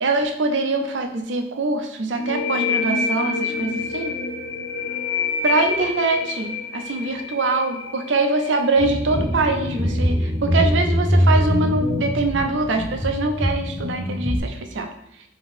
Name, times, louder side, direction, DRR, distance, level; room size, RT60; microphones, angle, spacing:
voice 1, 0.0-4.1 5.4-14.9, right 3 dB, 80° right, 5 dB, 0.5 m, -23 dB
sound 1, 2.2-9.6, left 4 dB, 60° left, 0.5 m, -27 dB
sound 2, 8.8-14.4, equal, 15° right, 1.0 m, -22 dB
3.6 x 3.5 x 3.5 m, 0.78 s
head